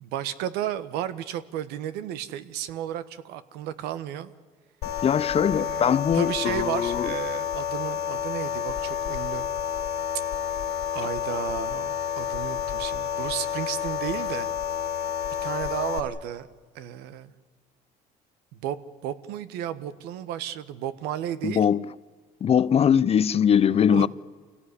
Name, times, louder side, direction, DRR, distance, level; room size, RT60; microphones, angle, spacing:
voice 1, 0.0-4.3 5.4-9.4 10.9-14.5 15.4-16.5 16.7-17.3 18.5-18.8 19.0-21.6 23.9-24.1, right 11 dB, 80° right, 1.4 m, -33 dB
sound 1, 4.8-16.0, left 8 dB, 75° left, 2.9 m, -30 dB
voice 2, 5.0-7.1 21.4-21.9 22.4-24.1, left 8 dB, 35° left, 0.6 m, -21 dB
26.5 x 17.0 x 9.8 m
supercardioid pair, 90°, 17 cm